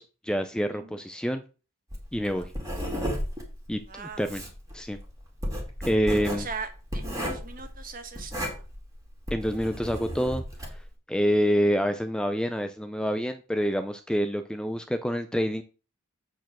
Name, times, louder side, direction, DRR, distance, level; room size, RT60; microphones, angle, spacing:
voice 1, 0.0-1.4 2.1-2.5 3.7-4.4 4.7-5.0 5.9-6.5 9.3-10.4 11.1-15.6, equal, 5° left, 8 dB, 0.4 m, -27 dB
voice 2, 0.7-1.0 2.3-2.5 3.9-4.3 6.3-8.6, right 5 dB, 40° right, 8 dB, 1.2 m, -40 dB
Writing, 1.9-10.9, equal, 15° right, 2.4 m, -34 dB
8.1 x 4.4 x 6.1 m, 0.34 s
head